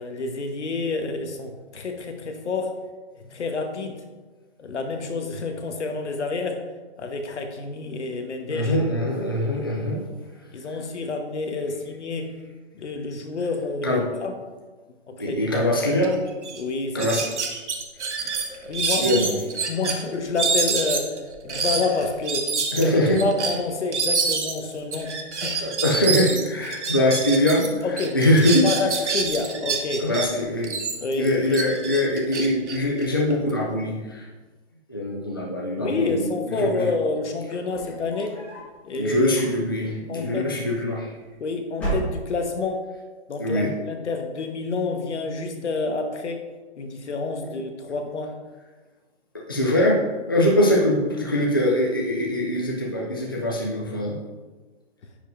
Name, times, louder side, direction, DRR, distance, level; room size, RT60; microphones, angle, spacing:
voice 1, 0.0-2.7 3.3-4.0 4.6-6.6 7.0-8.7 9.6-10.0 10.5-12.3 12.7-14.3 15.1-15.7 16.5-17.3 18.6-19.2 19.7-22.5 22.7-22.9 23.2-25.2 25.4-25.6 27.8-28.2 28.6-30.1 31.0-31.6 35.8-38.4 38.8-39.3 40.1-40.6 41.4-42.9 43.3-46.4 46.8-48.4, left 3 dB, 90° left, 4 dB, 1.2 m, -28 dB
voice 2, 8.5-10.0 10.7-10.8 13.8-14.1 15.2-16.2 16.9-17.6 18.2-18.3 19.0-19.4 22.7-23.2 25.6-28.7 30.0-30.7 31.2-34.3 34.9-36.9 38.9-41.1 43.4-43.7 49.5-54.2, left 1 dB, 20° left, -3 dB, 0.3 m, -23 dB
sound 1, 16.0-16.1 16.4-16.6 17.0-19.9 20.4-27.7 28.0-30.3 30.6-33.5, right 4 dB, 85° right, 1.3 m, -27 dB
sound 2, 37.6-38.8 39.2-39.9 40.9-41.4 41.7-42.6, right 2 dB, 5° left, 1.5 m, -32 dB
10.0 x 5.2 x 2.5 m, 1.3 s
hypercardioid pair, 170°, 34 cm